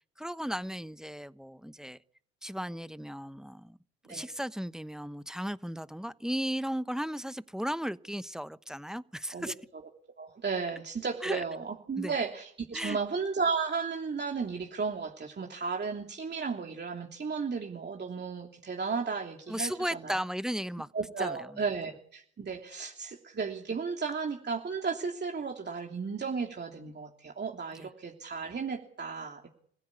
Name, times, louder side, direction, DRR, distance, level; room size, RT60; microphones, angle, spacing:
voice 1, 0.2-2.0 2.4-3.8 4.1-9.6 11.2-11.4 12.0-12.1 12.7-13.0 19.5-20.9 21.2-21.6 27.8-27.9, equal, ahead, 1.0 m, -35 dB
voice 2, 10.2-20.2 20.9-29.5, right 5 dB, 30° right, 3.0 m, -34 dB
26.5 x 16.0 x 8.4 m
hypercardioid pair, 65°, 32 cm